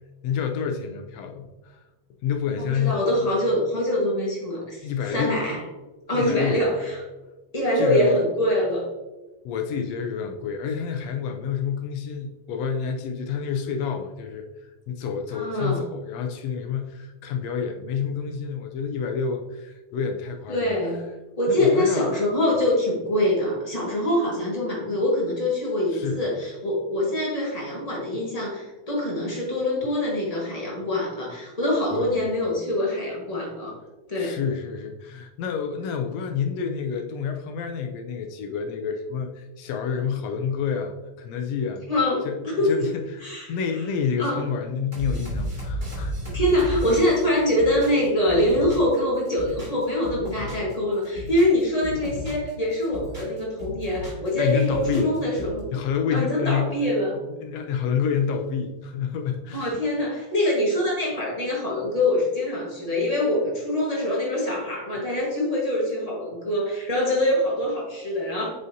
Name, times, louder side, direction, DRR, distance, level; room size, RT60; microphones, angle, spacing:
voice 1, 0.2-1.8 2.2-3.1 4.8-5.4 6.1-6.8 7.7-8.2 9.5-20.7 21.5-22.1 25.9-26.2 31.9-32.2 34.2-41.8 42.3-42.4 42.6-46.4 54.4-55.2 55.7-56.9 57.4-59.7, left 6 dB, 75° left, 5 dB, 1.6 m, -28 dB
voice 2, 2.6-5.6 6.1-7.0 7.5-8.9 15.3-15.8 20.5-21.0 21.4-33.7 34.1-34.4 41.9-42.9 43.2-43.8 44.2-44.4 46.3-55.7 56.1-57.2 59.5-68.5, left 1 dB, 40° left, -4 dB, 0.5 m, -24 dB
sound 1, 44.9-49.0 49.3-50.7 51.0-52.5 52.8-54.3 54.6-55.6, equal, 15° right, 2.2 m, -33 dB
8.0 x 5.5 x 2.7 m, 1.1 s
omnidirectional pair, 3.3 m